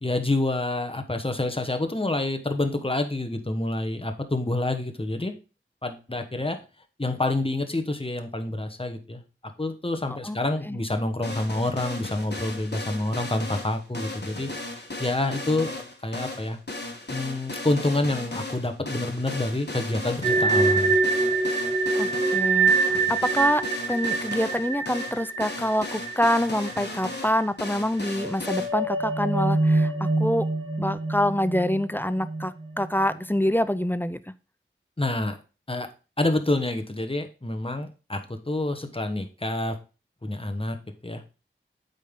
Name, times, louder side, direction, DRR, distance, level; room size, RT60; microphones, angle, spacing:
voice 1, 0.0-5.3 5.8-6.6 7.0-9.2 9.6-14.5 15.0-16.6 17.1-20.9 35.0-35.4 35.7-35.9 36.2-39.8 40.2-40.8 41.0-41.2, left 2 dB, 25° left, 6 dB, 1.2 m, -27 dB
sound 1, 11.2-28.7, left 2 dB, 50° left, 1.5 m, -36 dB
sound 2, 20.2-27.1 27.3-27.5 28.0-33.4, right 3 dB, 30° right, 2.8 m, -25 dB
voice 2, 22.0-30.5 30.8-34.2, equal, 10° left, 14 dB, 0.5 m, -26 dB
8.4 x 5.4 x 3.7 m, 0.32 s
wide cardioid pair, 50°, 21 cm